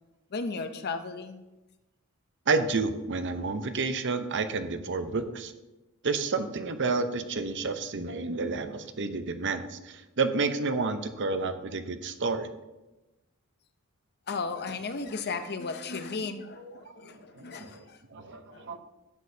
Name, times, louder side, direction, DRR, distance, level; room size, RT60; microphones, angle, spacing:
voice 1, 0.3-1.4 14.3-18.0 18.3-18.6, left 4 dB, 50° left, 9 dB, 0.7 m, -35 dB
voice 2, 2.5-5.5 6.0-12.5 16.6-18.8, right 4 dB, 60° right, 8 dB, 0.8 m, -30 dB
12.0 x 8.5 x 2.8 m, 1.0 s
head